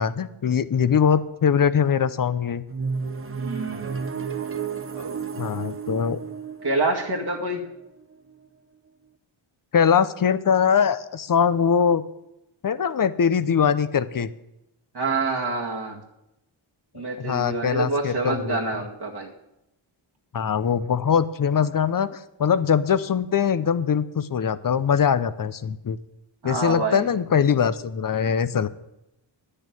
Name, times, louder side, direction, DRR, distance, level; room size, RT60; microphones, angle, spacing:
voice 1, 0.0-2.6 5.4-6.2 9.7-12.0 12.6-14.3 17.2-18.6 20.3-26.0 26.4-28.7, left 7 dB, 45° left, 15 dB, 0.7 m, -22 dB
sound 1, 2.7-8.5, right 6 dB, 25° right, 0.8 m, -32 dB
voice 2, 3.4-4.0 4.9-5.5 6.6-7.6 14.9-16.0 16.9-19.3 26.4-27.1, right 3 dB, 50° right, -1 dB, 1.9 m, -27 dB
10.0 x 6.7 x 9.2 m, 0.86 s
cardioid pair, 90°, 49 cm